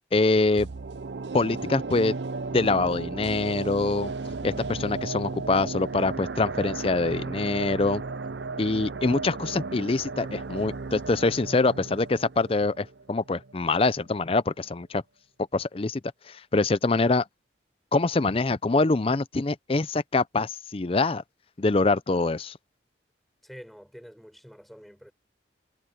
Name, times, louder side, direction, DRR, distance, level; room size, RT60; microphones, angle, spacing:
voice 1, 0.1-0.7 1.3-2.1 2.5-4.1 4.4-8.0 8.6-15.0 15.5-16.0 16.3-17.2 17.9-21.2 21.6-22.6, left 3 dB, 30° left, 0.5 m, -24 dB
sound 1, 0.6-13.7 14.0-14.1, right 3 dB, 75° right, 0.6 m, -35 dB
voice 2, 23.4-25.1, equal, ahead, 6.1 m, -47 dB
head